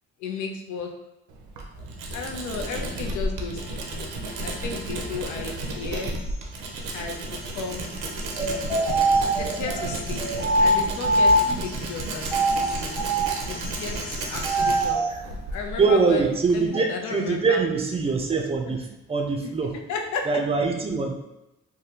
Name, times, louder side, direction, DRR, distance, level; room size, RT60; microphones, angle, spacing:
voice 1, 0.2-0.9 2.1-4.1 4.4-6.1 6.9-7.8 9.4-10.3 10.6-13.0 13.5-15.0 15.5-17.6 18.7-18.8 19.9-20.3, left 5 dB, 75° left, 3 dB, 0.5 m, -34 dB
Tools, 1.3-16.7, right 2 dB, 90° right, 0.6 m, -33 dB
sound 1, 8.3-11.7 12.2-15.2, right 1 dB, 15° left, 1.3 m, -23 dB
voice 2, 15.8-19.8 20.3-21.1, right 4 dB, 20° right, 2 dB, 0.5 m, -23 dB
3.3 x 2.2 x 2.8 m, 0.95 s
cardioid pair, 90°, 30 cm